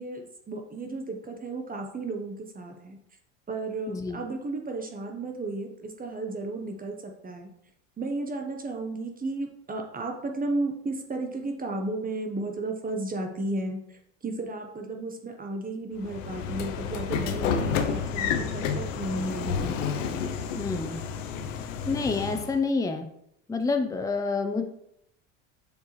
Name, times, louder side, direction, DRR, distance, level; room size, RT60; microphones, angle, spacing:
voice 1, 0.0-3.0 3.5-7.5 8.0-19.7, right 2 dB, 20° right, 3 dB, 1.0 m, -33 dB
voice 2, 3.9-4.2 20.6-21.0 21.9-23.0 23.5-24.6, left 4 dB, 10° left, 6 dB, 0.7 m, -28 dB
Train / Sliding door, 16.0-22.6, left 6 dB, 80° left, 0.8 m, -30 dB
7.1 x 4.5 x 3.2 m, 0.74 s
hypercardioid pair, 85°, 38 cm